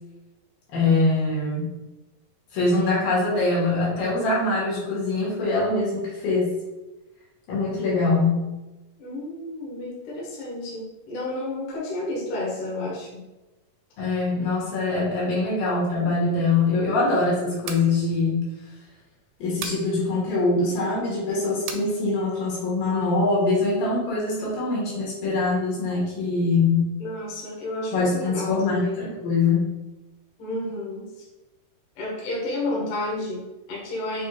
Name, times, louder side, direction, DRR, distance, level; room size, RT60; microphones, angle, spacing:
voice 1, 0.7-1.7 2.5-6.5 7.5-8.4 14.0-18.4 19.4-26.8 27.9-29.7, left 3 dB, 80° left, -6 dB, 3.3 m, -23 dB
voice 2, 9.0-13.3 27.0-29.1 30.4-31.1 32.0-34.3, left 2 dB, 65° left, -5 dB, 2.3 m, -31 dB
sound 1, 17.6-17.9 19.6-19.9 21.7-21.9, right 6 dB, 80° right, 2.0 m, -34 dB
6.6 x 3.1 x 2.3 m, 1.1 s
omnidirectional pair, 3.9 m